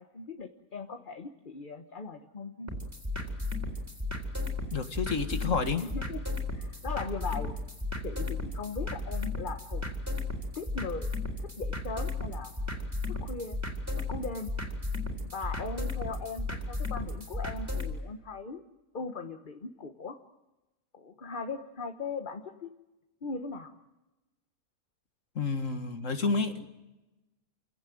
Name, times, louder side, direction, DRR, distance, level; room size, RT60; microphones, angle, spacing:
voice 1, 0.0-2.7 5.8-7.5 8.0-9.8 10.5-11.1 11.4-12.5 13.1-13.6 13.9-14.5 15.2-18.6 18.9-20.2 20.9-22.7 23.2-23.7, left 4 dB, 35° left, 7 dB, 1.2 m, -39 dB
sound 1, 2.7-17.9, left 2 dB, 10° right, 4.0 m, -35 dB
voice 2, 4.7-5.8 25.4-26.7, left 4 dB, 55° left, 8 dB, 2.1 m, -30 dB
29.0 x 17.0 x 9.4 m, 1.0 s
omnidirectional pair, 1.6 m